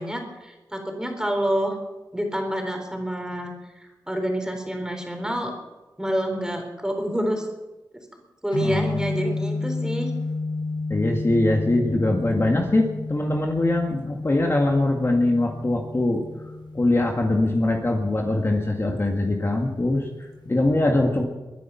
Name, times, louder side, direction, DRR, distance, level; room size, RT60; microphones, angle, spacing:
voice 1, 0.0-1.8 2.1-5.6 6.0-7.5 8.4-10.1, equal, 10° right, 3 dB, 4.0 m, -28 dB
sound 1, 8.5-20.6, left 3 dB, 80° left, 4.6 m, -32 dB
voice 2, 8.6-9.0 10.9-16.2 16.7-20.1 20.5-21.2, left 2 dB, 35° left, 1 dB, 2.1 m, -22 dB
22.5 x 10.5 x 5.8 m, 1.1 s
wide cardioid pair, 85°, 8 cm